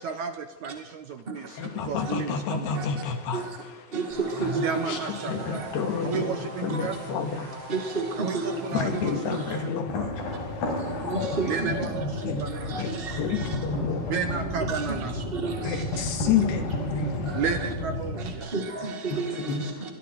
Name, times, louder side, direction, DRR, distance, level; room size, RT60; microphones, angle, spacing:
voice 1, 0.0-2.7 4.6-5.7 6.0-7.0 8.2-9.4 11.4-12.7 14.0-15.2 17.3-18.5, right 6 dB, 65° right, 1.9 m, -33 dB
voice 2, 1.5-3.4 4.4-4.5 4.9-5.0 5.3-7.7 8.7-14.1 15.6-17.4 19.1-19.8, left 6 dB, 90° left, 4.3 m, -30 dB
sound 1, 4.1-9.6, right 2 dB, 85° right, 7.4 m, -41 dB
voice 3, 4.4-5.0 6.7-6.9 7.7-8.6 11.1-11.7 12.7-13.1 14.7-14.8 15.3-15.7 18.5-19.6, right 4 dB, 25° right, 1.4 m, -30 dB
sound 2, 9.9-18.3, left 2 dB, 65° left, 7.5 m, -32 dB
26.5 x 22.5 x 4.7 m
omnidirectional pair, 4.6 m